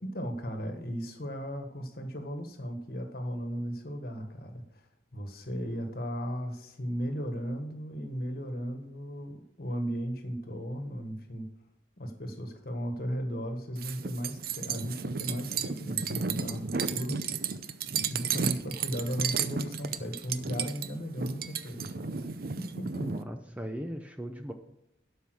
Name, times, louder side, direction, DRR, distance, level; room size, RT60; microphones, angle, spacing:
voice 1, 0.0-11.5 12.0-17.5 18.1-22.2 22.6-23.1, equal, 50° left, 6 dB, 1.5 m, -36 dB
sound 1, 13.8-23.2, right 6 dB, 50° right, 0.6 m, -33 dB
voice 2, 22.9-24.5, equal, 5° right, 5 dB, 0.6 m, -38 dB
12.5 x 5.5 x 6.3 m, 0.81 s
head